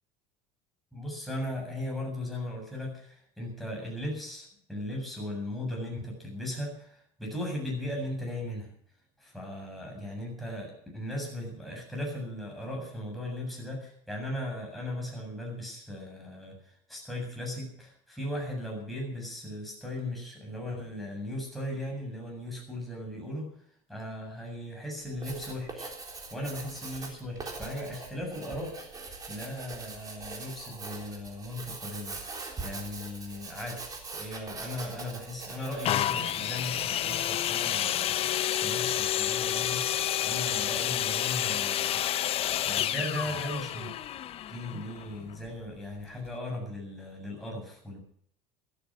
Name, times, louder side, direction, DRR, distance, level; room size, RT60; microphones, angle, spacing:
voice 1, 0.9-8.7 9.2-23.5 23.9-25.9 26.3-29.0 29.3-32.2 32.6-33.9 34.1-42.0 42.6-44.0 44.5-48.0, left 1 dB, ahead, -2 dB, 7.5 m, -37 dB
Writing, 25.0-37.5, right 3 dB, 20° right, 3.8 m, -42 dB
sound 1, 35.8-45.5 46.3-46.4, left 11 dB, 35° left, 0.7 m, -29 dB
16.5 x 12.5 x 6.2 m, 0.62 s
cardioid pair, 145°, 16 cm